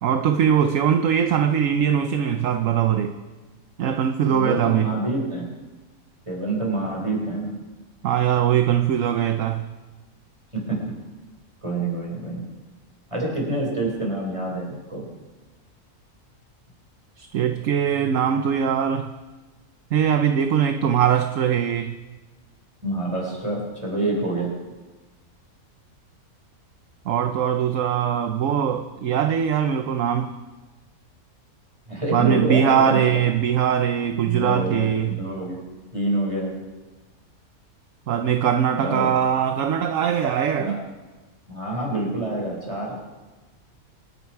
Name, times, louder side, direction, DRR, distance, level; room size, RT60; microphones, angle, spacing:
voice 1, 0.0-3.2 3.8-4.9 8.0-9.7 17.2-19.1 19.9-21.9 27.0-30.4 32.1-35.2 38.1-40.8, right 8 dB, 65° right, 7 dB, 1.1 m, -21 dB
voice 2, 4.3-5.5 6.2-7.6 10.5-10.8 11.6-12.4 13.1-15.1 22.8-24.5 31.9-33.0 34.2-36.5 38.8-39.2 40.5-40.8 41.5-43.0, right 2 dB, 20° right, -2 dB, 4.9 m, -27 dB
26.5 x 10.5 x 4.7 m, 1.2 s
omnidirectional pair, 1.6 m